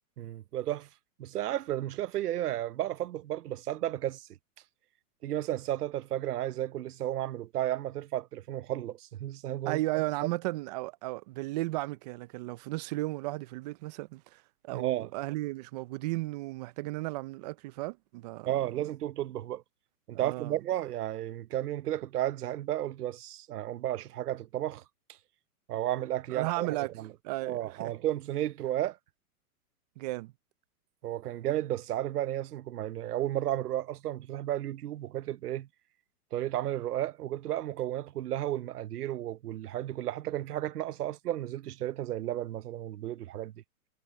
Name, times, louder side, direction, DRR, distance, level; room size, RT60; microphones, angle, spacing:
voice 1, 0.2-0.9 1.2-4.3 5.2-9.8 14.7-15.1 18.5-19.6 20.1-24.8 25.7-27.1 27.4-29.0 31.0-35.7 36.3-43.5, right 13 dB, 80° right, 0.8 m, -33 dB
voice 2, 9.7-18.5 20.1-20.6 26.3-26.9 27.2-27.9 30.0-30.3, right 20 dB, 30° right, 0.5 m, -35 dB
hypercardioid pair, 140°, 45 cm